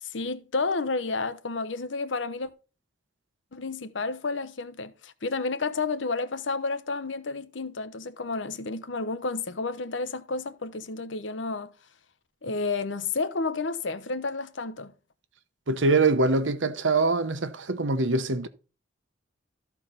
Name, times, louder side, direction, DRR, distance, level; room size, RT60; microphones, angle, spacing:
voice 1, 0.0-2.5 3.5-11.7 12.4-14.9, left 3 dB, 75° left, 0.9 m, -31 dB
voice 2, 15.7-18.5, right 3 dB, 80° right, 1.0 m, -23 dB
13.5 x 4.6 x 5.6 m
head